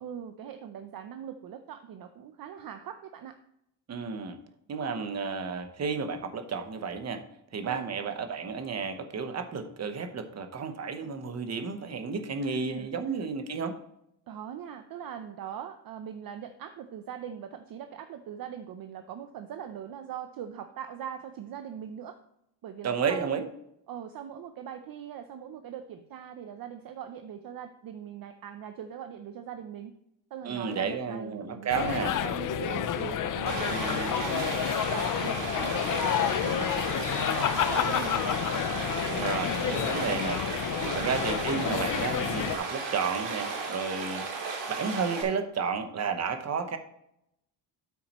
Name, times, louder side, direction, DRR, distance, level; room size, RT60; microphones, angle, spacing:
voice 1, 0.0-3.4 7.6-7.9 12.4-13.0 14.3-22.2 22.6-23.5 23.9-29.9 30.3-34.5 34.9-38.4 40.8-41.1, right 9 dB, 55° right, 8 dB, 0.6 m, -41 dB
voice 2, 3.9-4.4 4.7-7.2 7.5-13.7 22.8-23.4 30.4-32.1 33.7-34.2 39.2-40.4 40.9-44.3 44.7-46.8, right 5 dB, 35° right, 8 dB, 1.0 m, -32 dB
sound 1, 31.7-42.6, left 10 dB, 45° left, 0.6 m, -29 dB
Stream, 33.5-45.2, right 4 dB, 75° right, 2.4 m, -35 dB
9.4 x 8.4 x 3.0 m, 0.78 s
cardioid pair, 160°, 43 cm